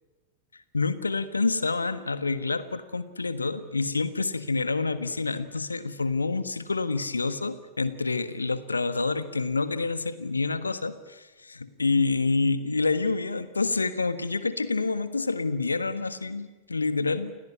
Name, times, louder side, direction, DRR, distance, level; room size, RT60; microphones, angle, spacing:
voice 1, 0.5-17.4, left 3 dB, 80° left, 13 dB, 1.4 m, -28 dB
29.0 x 17.5 x 9.5 m, 1.2 s
figure-of-eight pair, 90°, 0 cm